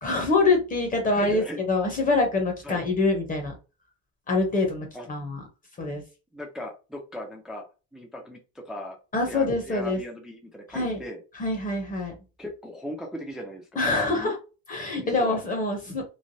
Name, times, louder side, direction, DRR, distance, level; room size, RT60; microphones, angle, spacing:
voice 1, 0.0-3.5 4.3-5.4 5.8-6.0 9.1-10.0 10.7-11.0 11.3-12.1 13.8-14.4 14.7-16.0, left 3 dB, 25° left, 3 dB, 0.7 m, -25 dB
voice 2, 1.1-1.6 2.6-2.8 4.9-5.1 6.3-7.6 7.9-9.0 9.2-11.2 12.4-14.3 15.0-15.4, left 1 dB, ahead, 2 dB, 0.3 m, -38 dB
3.1 x 2.1 x 2.6 m, 0.31 s
cardioid pair, 145°, 34 cm